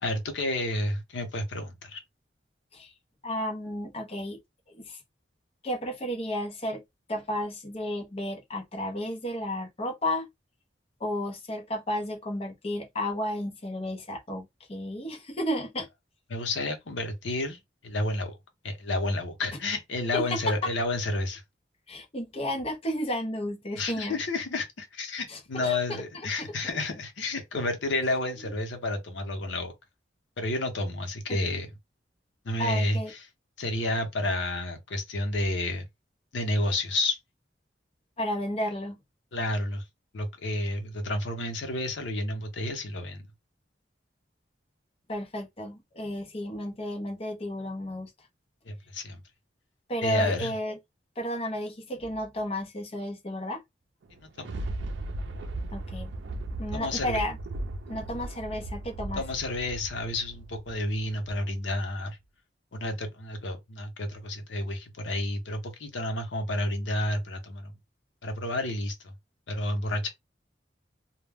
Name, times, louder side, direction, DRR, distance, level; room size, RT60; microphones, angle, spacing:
voice 1, 0.0-2.0 16.3-18.3 18.6-21.4 23.8-29.7 30.4-31.7 32.4-33.2 33.6-35.8 36.3-37.2 39.3-39.8 40.1-43.3 48.7-49.2 50.0-50.5 54.4-54.6 56.7-57.2 59.2-62.2 62.7-67.7 68.2-69.1 69.5-70.1, left 2 dB, 90° left, 0.7 m, -30 dB
voice 2, 3.2-4.4 4.7-5.0 5.6-6.8 7.1-10.3 11.0-15.9 20.1-20.5 21.9-24.2 25.3-26.5 31.3-31.4 32.6-33.1 38.2-39.0 45.1-48.1 49.9-50.8 51.2-53.6 55.7-56.1 56.6-57.4 57.9-59.2, equal, 35° left, 0.7 m, -32 dB
Thunder, 54.0-61.6 62.1-62.2, right 2 dB, 75° right, 0.4 m, -37 dB
2.2 x 2.1 x 3.4 m
head